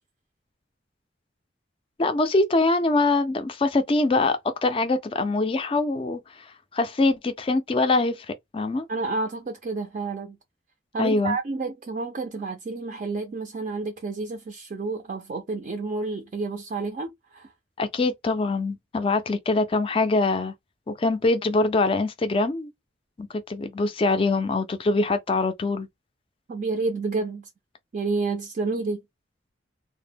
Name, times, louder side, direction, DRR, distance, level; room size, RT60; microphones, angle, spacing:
voice 1, 2.0-8.9 11.0-11.4 17.8-20.5 20.9-22.7 23.2-25.9, left 3 dB, 30° left, 0.3 m, -24 dB
voice 2, 8.9-10.4 10.9-17.5 26.5-27.5 27.9-29.0, right 3 dB, 40° right, 0.4 m, -30 dB
2.0 x 2.0 x 3.3 m
head